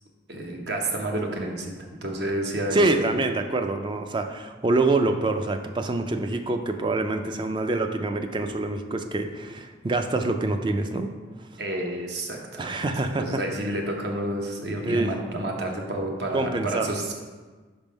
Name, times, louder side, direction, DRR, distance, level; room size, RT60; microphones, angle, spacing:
voice 1, 0.3-3.0 11.6-12.8 13.2-17.1, right 1 dB, 65° right, 1 dB, 0.9 m, -30 dB
voice 2, 2.7-11.1 12.6-13.4 14.9-15.1 16.3-16.9, right 2 dB, 25° right, 6 dB, 0.3 m, -25 dB
5.3 x 3.6 x 5.1 m, 1.3 s
head